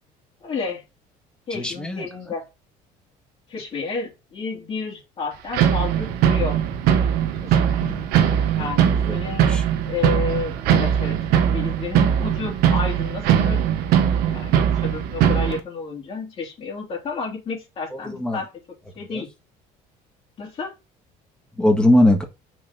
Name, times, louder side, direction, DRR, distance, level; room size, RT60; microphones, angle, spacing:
voice 1, 0.4-0.8 1.5-2.5 3.5-6.6 7.4-7.8 8.5-9.5 9.8-11.2 11.4-13.7 14.2-18.5 18.9-19.3 20.4-20.7, left 4 dB, 35° left, 3.3 m, -31 dB
voice 2, 1.5-2.1 7.8-8.4 8.8-9.2 9.5-9.6 17.9-18.4 19.1-19.2 21.6-22.2, left 1 dB, 5° left, 1.7 m, -21 dB
sound 1, 5.5-15.6, right 9 dB, 75° right, 1.3 m, -20 dB
6.4 x 4.0 x 5.5 m
cardioid pair, 135°, 16 cm